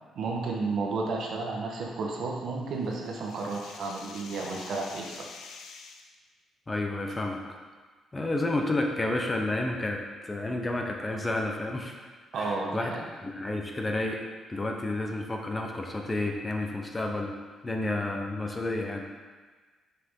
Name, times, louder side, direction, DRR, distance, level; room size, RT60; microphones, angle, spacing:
voice 1, 0.1-5.2 12.3-13.1, right 3 dB, 70° right, -1 dB, 1.3 m, -32 dB
sound 1, 2.3-6.1, left 5 dB, 75° left, 0.6 m, -47 dB
voice 2, 6.7-7.4 8.1-12.1 12.3-17.3 17.6-19.1, left 2 dB, 20° left, 2 dB, 0.9 m, -31 dB
6.7 x 5.9 x 3.8 m, 1.4 s
cardioid pair, 90°, 0 cm